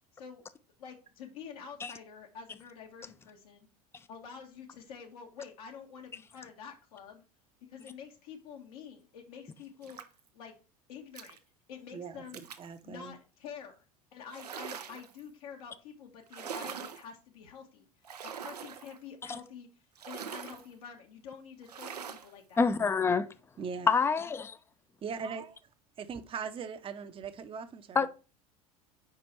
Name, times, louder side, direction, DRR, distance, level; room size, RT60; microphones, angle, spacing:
voice 1, 0.1-0.4 0.8-3.7 4.1-7.2 7.7-10.0 10.3-10.5 10.9-11.4 11.7-12.4 12.8-13.8 14.1-17.8 18.2-19.7 20.1-22.6, left 7 dB, 70° left, 1.2 m, -48 dB
sound 1, 9.8-10.3 11.2-11.4 12.3-12.7 14.3-15.2 16.3-17.1 18.0-19.0 20.0-20.7 21.6-22.3, right 7 dB, 90° right, 0.6 m, -42 dB
voice 2, 11.9-12.2 12.6-13.1 23.6-23.9 25.0-25.6 26.0-28.1, right 6 dB, 25° right, 0.7 m, -40 dB
voice 3, 22.6-23.3 23.9-24.6 28.0-28.1, left 5 dB, 10° left, 0.4 m, -26 dB
5.0 x 4.7 x 4.3 m
hypercardioid pair, 80°, 20 cm